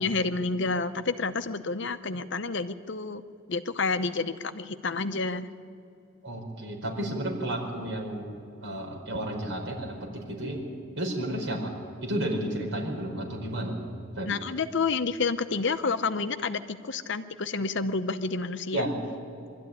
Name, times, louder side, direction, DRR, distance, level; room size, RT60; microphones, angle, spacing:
voice 1, 0.0-3.2 3.5-5.5 14.2-18.8, left 4 dB, 55° left, 10 dB, 0.7 m, -29 dB
voice 2, 6.2-8.3 8.6-10.6 11.0-11.7 12.0-13.8 14.2-14.3 18.7-18.9, right 1 dB, 65° right, 0 dB, 4.9 m, -32 dB
23.5 x 13.0 x 9.7 m, 2.6 s
head